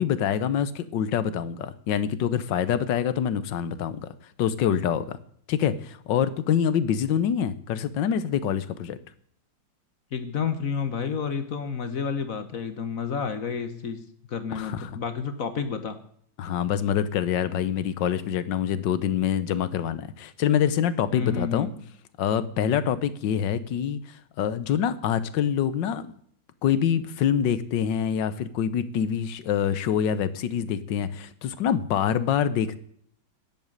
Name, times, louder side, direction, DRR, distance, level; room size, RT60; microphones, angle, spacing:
voice 1, 0.0-4.1 4.4-5.2 5.5-9.0 14.5-14.9 16.4-21.7 22.2-26.1 26.6-32.8, left 8 dB, 75° left, 14 dB, 1.6 m, -25 dB
voice 2, 10.1-16.0 21.1-21.7, left 6 dB, 50° left, 10 dB, 1.3 m, -30 dB
10.5 x 8.2 x 9.0 m, 0.65 s
omnidirectional pair, 2.0 m